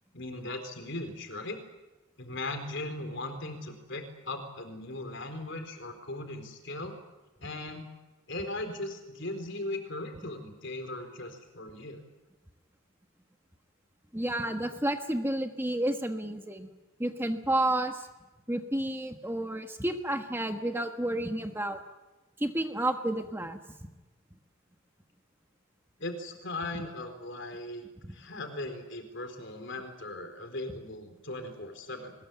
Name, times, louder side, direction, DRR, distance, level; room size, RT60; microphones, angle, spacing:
voice 1, 0.1-1.6 2.2-6.9 7.4-7.9 8.3-12.0 26.0-27.8 28.1-32.1, left 2 dB, 55° left, 6 dB, 4.2 m, -38 dB
voice 2, 14.1-16.7 17.0-18.1 18.5-21.8 22.4-23.6, right 1 dB, 10° right, 5 dB, 1.4 m, -30 dB
22.0 x 21.0 x 9.3 m, 1.1 s
head